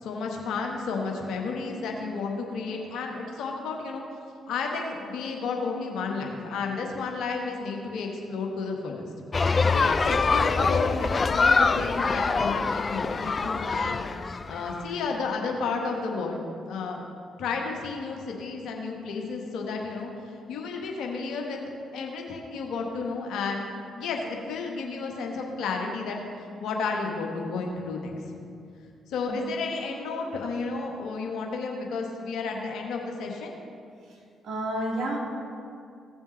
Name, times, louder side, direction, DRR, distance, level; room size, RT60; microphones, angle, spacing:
voice 1, 0.0-4.0 4.5-9.1 9.7-14.0 14.5-16.4 16.7-17.0 17.4-20.1 20.5-21.6 21.9-23.7 24.0-28.1 29.1-33.5, left 4 dB, 65° left, 1 dB, 1.4 m, -32 dB
sound 1, 9.3-14.9, left 4 dB, 35° left, 0.4 m, -24 dB
voice 2, 34.0-35.2, right 1 dB, 65° right, -2 dB, 2.1 m, -32 dB
16.5 x 7.1 x 3.2 m, 2.4 s
hypercardioid pair, 40°, 0 cm